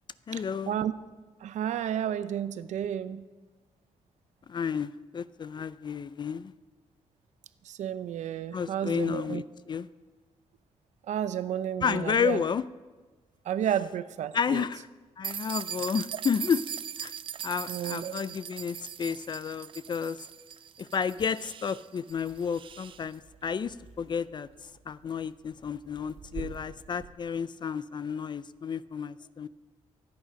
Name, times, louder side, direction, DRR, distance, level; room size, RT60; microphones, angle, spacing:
voice 1, 0.3-0.8 4.5-6.5 8.5-9.9 11.8-12.6 14.3-14.9 15.2-16.6 17.0-17.1 17.4-20.2 20.8-29.5, left 6 dB, 40° left, 16 dB, 0.4 m, -31 dB
voice 2, 1.4-3.2 7.7-9.4 11.1-12.4 13.5-14.6 17.7-18.2, right 10 dB, 85° right, 14 dB, 0.6 m, -31 dB
sound 1, 15.2-23.0, right 8 dB, 45° right, 0.3 m, -40 dB
sound 2, 22.1-27.1, right 7 dB, 65° right, 2.4 m, -49 dB
25.0 x 8.9 x 5.2 m, 1.3 s
cardioid pair, 130°, 12 cm